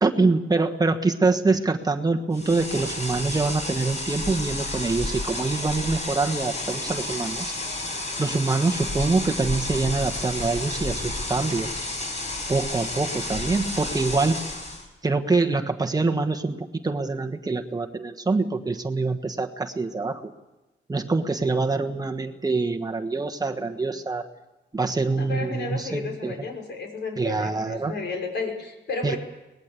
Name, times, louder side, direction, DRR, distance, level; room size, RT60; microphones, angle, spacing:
voice 1, 0.0-7.5 8.2-11.8 12.5-14.4 15.0-20.3 20.9-24.3 24.7-26.3 27.2-28.0 29.0-29.2, right 3 dB, 20° right, 4 dB, 1.3 m, -25 dB
sound 1, 2.3-14.9, left 2 dB, 35° left, 5.8 m, -31 dB
voice 2, 25.2-29.2, left 3 dB, 65° left, 3 dB, 5.9 m, -32 dB
24.0 x 20.0 x 8.2 m, 1.1 s
wide cardioid pair, 125°, 20 cm